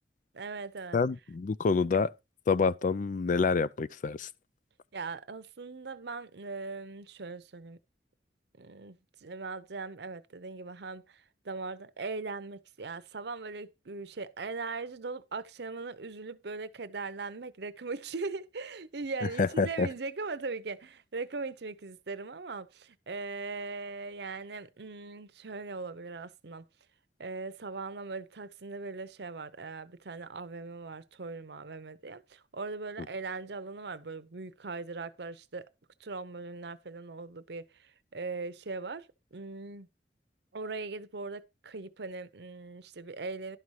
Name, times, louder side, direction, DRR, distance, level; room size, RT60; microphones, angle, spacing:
voice 1, 0.3-1.0 4.9-7.8 8.6-26.6 27.2-35.6 36.0-39.9 40.5-43.6, right 3 dB, 65° right, 0.8 m, -40 dB
voice 2, 0.9-2.1 2.5-4.3 19.4-19.9, left 4 dB, 45° left, 0.4 m, -27 dB
11.5 x 5.5 x 4.7 m
head